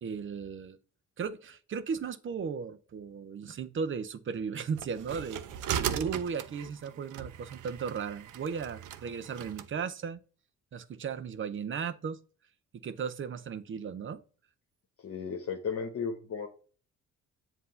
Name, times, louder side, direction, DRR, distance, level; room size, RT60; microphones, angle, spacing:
voice 1, 0.0-0.8 1.2-5.4 5.8-10.2 10.7-12.2 12.8-14.2, right 6 dB, 40° right, 0.6 m, -36 dB
sound 1, 4.8-9.7, right 10 dB, 80° right, 0.6 m, -38 dB
voice 2, 15.0-16.5, left 6 dB, 50° left, 1.1 m, -35 dB
7.5 x 2.7 x 5.5 m
cardioid pair, 90°, 30 cm